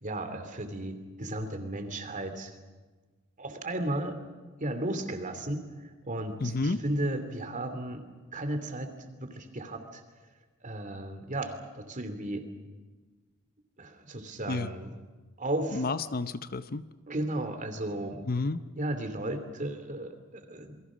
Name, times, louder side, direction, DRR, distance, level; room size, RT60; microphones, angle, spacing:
voice 1, 0.0-2.6 3.4-4.2 4.6-8.0 8.3-10.0 10.6-12.4 13.8-14.9 15.4-15.9 17.1-18.2 18.8-20.8, right 1 dB, 40° right, 8 dB, 2.8 m, -34 dB
voice 2, 6.4-6.8 14.5-14.7 15.7-16.8 18.3-18.6, left 3 dB, 45° left, 12 dB, 0.8 m, -30 dB
28.0 x 22.5 x 6.3 m, 1.3 s
head